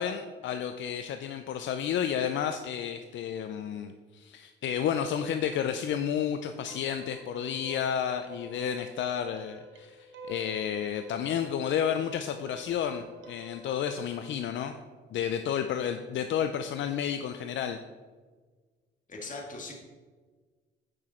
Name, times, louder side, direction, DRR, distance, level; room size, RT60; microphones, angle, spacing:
voice 1, 0.0-14.7 15.1-17.8, left 8 dB, 70° left, 7 dB, 0.5 m, -31 dB
sound 1, 6.7-14.6, right 3 dB, 75° right, 1.3 m, -49 dB
voice 2, 19.1-19.7, left 3 dB, 40° left, -1 dB, 2.3 m, -39 dB
9.1 x 6.1 x 4.4 m, 1.4 s
cardioid pair, 90°, 20 cm